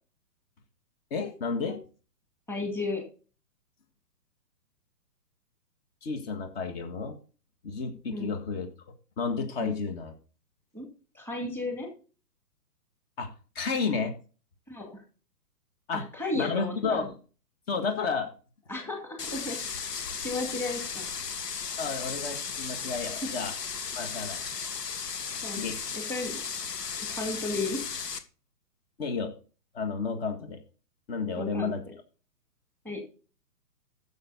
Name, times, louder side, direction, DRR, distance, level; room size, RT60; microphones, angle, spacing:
voice 1, 1.1-1.8 6.0-7.2 7.6-8.7 9.2-10.1 13.2-13.3 13.6-14.1 15.9-16.0 16.4-17.1 17.7-18.3 21.8-23.5 23.9-24.4 25.6-25.8 29.0-29.3 29.7-30.6 31.1-31.8, left 5 dB, 40° left, 5 dB, 1.9 m, -31 dB
voice 2, 2.5-3.0 8.1-8.4 9.6-9.7 10.7-10.9 11.1-11.9 14.7-15.0 15.9-17.1 18.7-19.6 19.8-19.9 20.2-21.1 23.1-23.3 25.4-25.7 25.9-26.4 27.1-27.8 31.4-31.7 32.8-33.0, left 2 dB, 5° left, 1 dB, 2.3 m, -34 dB
sound 1, 19.2-28.2, left 6 dB, 75° left, 1.6 m, -35 dB
11.5 x 7.2 x 4.0 m, 0.36 s
hypercardioid pair, 135°, 48 cm